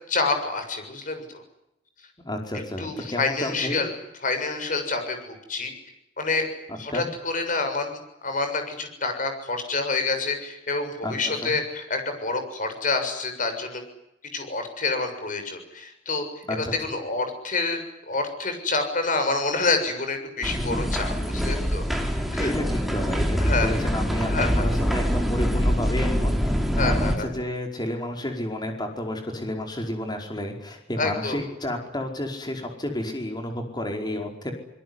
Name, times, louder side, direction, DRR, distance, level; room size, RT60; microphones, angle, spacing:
voice 1, 0.1-1.4 2.8-3.9 4.2-5.7 6.2-6.5 6.8-7.9 8.2-13.8 14.3-22.5 23.4-23.7 24.3-24.7 26.8-27.3 31.0-31.4, left 3 dB, 45° left, 7 dB, 6.9 m, -28 dB
voice 2, 2.2-3.8 6.7-7.1 11.0-11.5 16.5-16.7 22.4-34.5, left 1 dB, 25° left, 3 dB, 5.0 m, -31 dB
sound 1, 20.4-27.2, equal, ahead, 4.0 m, -24 dB
24.5 x 22.0 x 9.8 m, 0.84 s
head